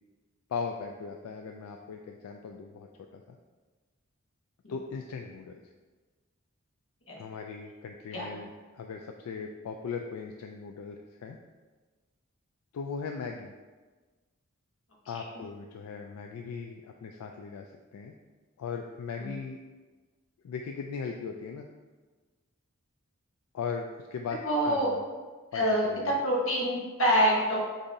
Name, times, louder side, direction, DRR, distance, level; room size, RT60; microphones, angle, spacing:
voice 1, 0.5-3.4 4.7-5.6 7.2-11.4 12.7-13.5 15.1-18.1 18.6-19.6 20.4-21.7 23.5-25.0 25.5-26.2, left 5 dB, 90° left, 3 dB, 0.3 m, -38 dB
voice 2, 24.4-24.9 25.5-27.6, equal, 65° left, -3 dB, 1.1 m, -26 dB
6.7 x 2.7 x 2.6 m, 1.3 s
head